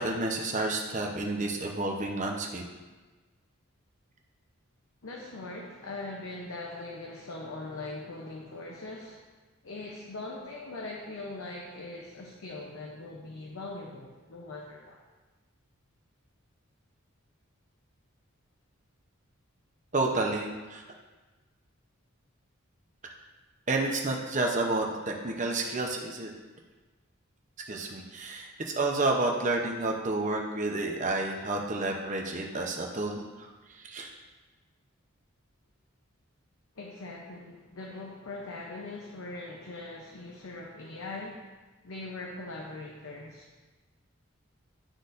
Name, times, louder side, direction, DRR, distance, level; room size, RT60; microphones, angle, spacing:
voice 1, 0.0-2.6 19.9-20.8 23.7-26.3 27.7-33.2 33.8-34.1, right 2 dB, 35° right, 1 dB, 0.8 m, -30 dB
voice 2, 5.0-9.2 9.6-15.0 36.8-41.5 41.8-43.6, left 2 dB, 80° left, -1 dB, 0.7 m, -41 dB
11.5 x 4.0 x 2.6 m, 1.3 s
head